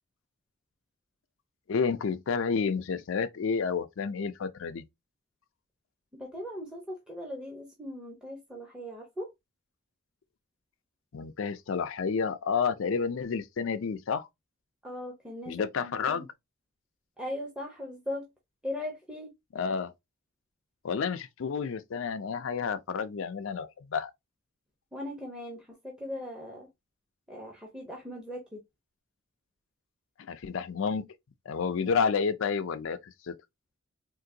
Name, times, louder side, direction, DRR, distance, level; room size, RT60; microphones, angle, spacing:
voice 1, 1.7-4.8 11.1-14.3 15.5-16.3 19.5-19.9 20.8-24.1 30.3-31.1 31.5-33.4, left 5 dB, 65° left, 0.4 m, -30 dB
voice 2, 6.1-9.3 14.8-15.5 15.8-16.2 17.2-18.3 18.6-19.3 24.9-26.7 27.3-28.6, left 1 dB, 5° right, 0.6 m, -39 dB
3.7 x 2.6 x 2.6 m
head